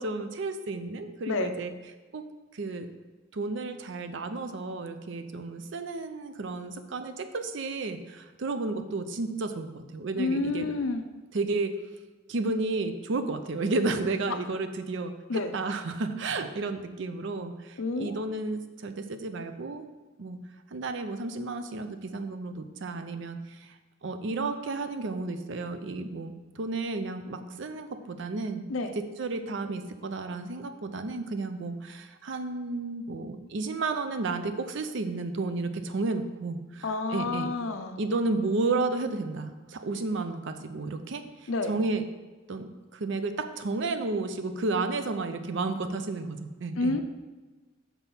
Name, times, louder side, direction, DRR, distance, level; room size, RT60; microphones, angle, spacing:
voice 1, 0.0-1.7 2.1-2.2 2.5-2.9 3.3-10.7 11.3-11.7 12.3-19.8 20.2-20.4 20.7-23.7 24.0-28.7 28.9-37.5 38.0-42.0 42.5-47.0, right 3 dB, 60° right, 9 dB, 0.5 m, -32 dB
voice 2, 10.2-11.0 15.3-15.5 17.8-18.2 28.7-29.0 36.8-38.0 41.5-41.7 46.8-47.0, left 3 dB, 75° left, 8 dB, 0.6 m, -29 dB
6.1 x 4.1 x 5.3 m, 1.2 s
head